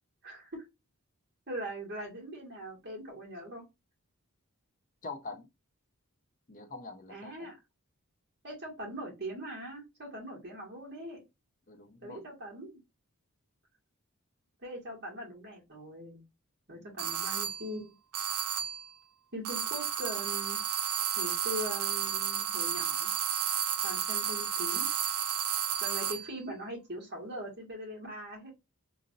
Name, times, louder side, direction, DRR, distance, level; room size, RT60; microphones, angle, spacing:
voice 1, 0.2-0.6 1.5-3.6 7.1-7.6 8.4-11.3 12.0-12.8 14.6-16.2 16.7-18.0 19.3-20.6 21.2-23.1 23.8-24.9 25.8-28.5, equal, 50° right, 2.2 m, -41 dB
voice 2, 5.0-5.5 6.5-7.5 11.7-12.3 16.8-17.0, left 3 dB, 35° left, 0.6 m, -44 dB
sound 1, 17.0-17.7 18.1-18.9 19.4-26.3, right 8 dB, 90° right, 0.6 m, -32 dB
3.8 x 2.8 x 2.6 m
head